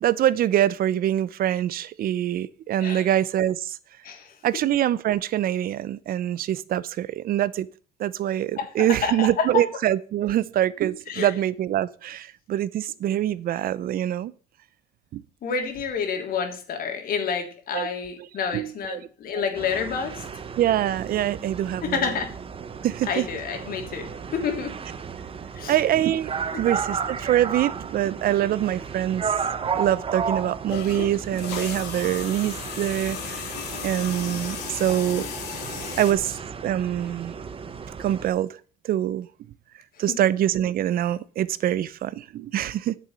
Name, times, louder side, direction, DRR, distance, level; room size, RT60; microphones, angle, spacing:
voice 1, 0.0-3.8 4.4-7.7 8.0-14.3 15.1-15.2 17.7-17.9 18.5-19.0 20.6-22.0 22.8-23.3 25.7-26.3 26.6-29.3 29.7-33.4 33.8-35.3 36.0-36.3 36.6-37.3 38.0-38.5 38.8-39.3 40.0-43.0, right 12 dB, 60° right, 0.8 m, -24 dB
voice 2, 4.0-4.4 8.6-9.6 11.1-11.3 15.4-20.2 21.8-22.4 23.1-24.7 25.5-25.8 26.5-26.6 39.9-40.2, left 6 dB, 60° left, 3.3 m, -29 dB
sound 1, 19.5-38.3, right 6 dB, 35° right, 1.1 m, -34 dB
sound 2, 30.7-36.1, left 8 dB, 85° left, 2.9 m, -35 dB
9.4 x 7.0 x 7.9 m
cardioid pair, 110°, 17 cm